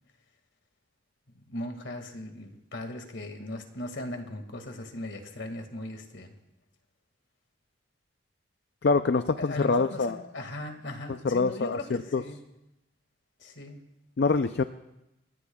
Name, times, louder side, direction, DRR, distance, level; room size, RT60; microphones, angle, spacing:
voice 1, 1.3-6.4 9.4-12.4 13.4-13.8, left 1 dB, 80° left, 5 dB, 2.0 m, -38 dB
voice 2, 8.8-10.2 11.2-11.8 12.1-12.2 14.2-14.6, left 4 dB, 60° left, 10 dB, 0.4 m, -24 dB
28.5 x 16.0 x 2.3 m, 0.94 s
head